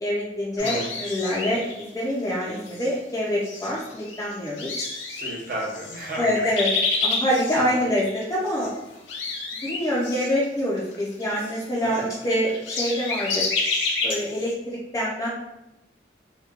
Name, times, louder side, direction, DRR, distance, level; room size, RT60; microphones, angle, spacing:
voice 1, 0.0-4.9 6.2-6.7 7.0-8.7 9.6-13.3 14.0-15.3, equal, 20° left, -6 dB, 0.4 m, -26 dB
sound 1, 0.6-1.9 2.4-2.9 3.4-8.7 8.9-14.5, left 3 dB, 85° left, 0.5 m, -29 dB
voice 2, 5.1-6.4 6.8-7.0 7.5-7.8 11.8-12.0, right 1 dB, 50° right, -2 dB, 0.6 m, -34 dB
2.9 x 2.1 x 2.3 m, 0.89 s
head